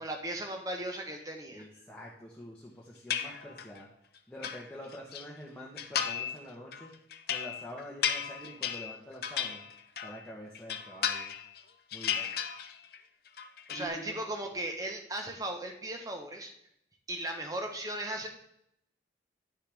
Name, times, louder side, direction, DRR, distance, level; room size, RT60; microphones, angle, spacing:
voice 1, 0.0-1.7 13.7-16.5 17.1-18.3, right 1 dB, 20° right, 3 dB, 1.0 m, -37 dB
voice 2, 1.5-3.9 4.3-6.9 7.3-9.6 10.0-11.3 11.9-12.5 13.7-14.1, equal, 10° left, -5 dB, 1.1 m, -46 dB
sound 1, 3.1-3.8 4.2-5.2 5.8-6.4 6.7-10.2 10.5-11.6 11.9-13.0 13.3-13.9, left 8 dB, 55° left, 0.6 m, -35 dB
9.9 x 6.6 x 3.4 m, 0.75 s
head